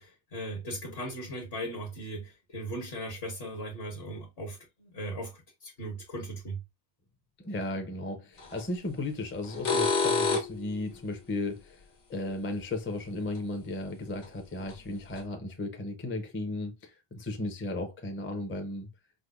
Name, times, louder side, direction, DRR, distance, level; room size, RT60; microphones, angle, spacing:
voice 1, 0.0-5.3 5.6-6.6, right 1 dB, 60° left, 1.2 m, -38 dB
voice 2, 7.4-11.8 12.1-18.9, left 2 dB, 20° left, 0.4 m, -35 dB
sound 1, 8.4-8.6 9.4-10.7 13.4-13.5 14.2-14.3 14.7-14.8 15.2-15.3, left 4 dB, 80° left, 1.4 m, -27 dB
4.9 x 2.0 x 2.3 m
omnidirectional pair, 1.2 m